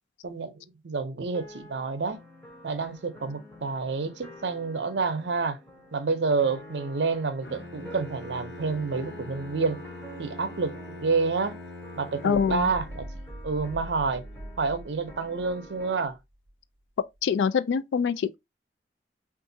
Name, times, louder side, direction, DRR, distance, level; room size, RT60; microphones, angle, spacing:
voice 1, 0.2-2.2 2.6-5.6 5.9-9.8 10.2-11.6 12.0-14.2 14.6-16.2, right 4 dB, 75° right, 0.6 m, -29 dB
sound 1, 1.3-16.1, right 1 dB, 15° left, 0.7 m, -48 dB
Bowed string instrument, 7.4-13.3, left 2 dB, 65° left, 0.8 m, -43 dB
voice 2, 12.2-12.7 17.2-18.4, left 6 dB, 85° left, 0.3 m, -24 dB
sound 2, 12.3-16.5, right 1 dB, 35° right, 0.7 m, -42 dB
3.7 x 2.4 x 2.6 m
head